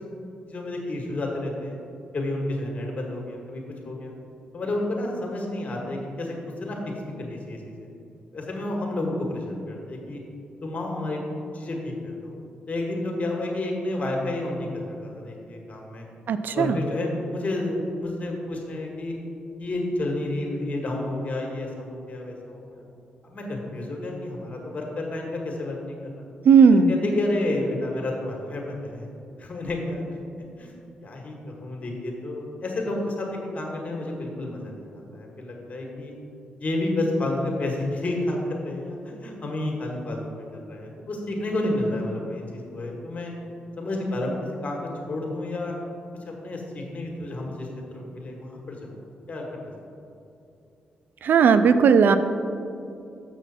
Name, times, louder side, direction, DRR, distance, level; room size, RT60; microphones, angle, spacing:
voice 1, 0.5-1.8 2.1-4.1 4.5-6.3 6.6-6.8 7.0-7.9 8.3-10.2 10.6-11.2 11.5-12.4 12.7-16.0 16.5-19.1 19.6-22.8 23.2-26.2 26.7-29.1 29.4-30.0 30.6-30.7 31.0-36.1 36.6-43.3 43.8-44.3 44.6-45.7 46.3-48.9 49.3-49.7, left 1 dB, 45° left, 0 dB, 1.7 m, -30 dB
voice 2, 16.3-16.7 26.5-26.9 51.2-52.2, right 6 dB, 65° right, 11 dB, 0.3 m, -16 dB
6.8 x 6.0 x 4.2 m, 2.7 s
supercardioid pair, 55°, 3 cm